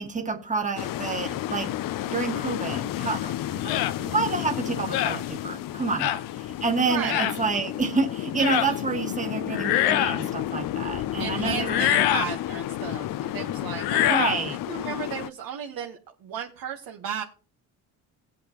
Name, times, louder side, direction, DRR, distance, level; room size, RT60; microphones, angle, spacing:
voice 1, 0.0-1.7 2.0-12.1 14.0-14.6, right 4 dB, 20° right, 4 dB, 1.7 m, -29 dB
sound 1, 0.8-15.3, left 13 dB, 60° left, 0.6 m, -32 dB
sound 2, 3.7-4.0 4.9-5.2 6.0-6.2 7.1-7.4 8.4-8.7 9.5-10.3 11.6-12.3 13.8-14.4, left 12 dB, 85° left, 0.9 m, -24 dB
voice 2, 6.9-7.3 11.2-14.4 14.7-17.2, right 7 dB, 70° right, 2 dB, 1.4 m, -34 dB
17.5 x 8.3 x 3.0 m, 0.38 s
supercardioid pair, 60°, 37 cm